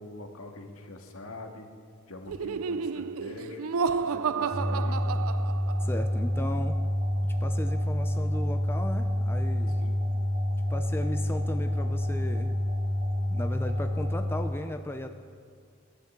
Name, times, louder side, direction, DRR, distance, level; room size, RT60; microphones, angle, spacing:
voice 1, 0.0-1.7 2.1-5.0 9.8-10.0, left 2 dB, 80° left, 3 dB, 1.8 m, -44 dB
Laughter, 2.3-6.0, right 5 dB, 90° right, 0.5 m, -31 dB
sound 1, 4.5-14.5, left 1 dB, 35° right, 1.4 m, -28 dB
voice 2, 5.8-6.8 7.4-9.8 10.7-12.5 13.3-15.1, left 1 dB, 10° left, 6 dB, 0.5 m, -36 dB
17.5 x 11.0 x 7.3 m, 2.2 s
head